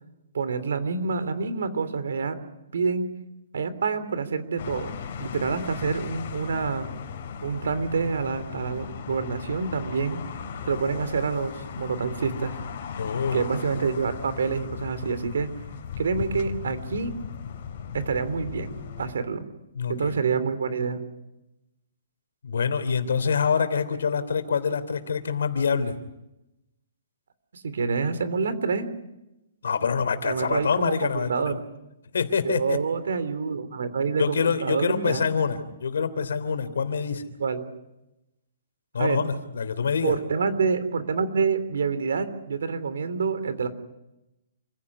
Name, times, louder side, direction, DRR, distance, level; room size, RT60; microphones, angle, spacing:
voice 1, 0.3-2.4 2.7-3.1 3.5-6.9 7.4-10.2 10.6-12.5 13.3-15.5 16.0-17.2 17.9-19.4 19.9-21.0 27.6-28.9 30.2-31.5 32.4-35.3 37.4-37.7 39.0-39.2 40.0-43.7, right 5 dB, 80° right, 12 dB, 3.3 m, -27 dB
sound 1, 4.6-19.1, left 7 dB, 40° left, 4.6 m, -37 dB
voice 2, 13.0-13.5 19.7-20.2 22.4-25.9 29.6-31.6 32.1-32.8 34.2-37.3 38.9-40.2, left 6 dB, 80° left, 12 dB, 3.1 m, -26 dB
28.5 x 16.0 x 9.8 m, 0.94 s
hypercardioid pair, 170°, 0 cm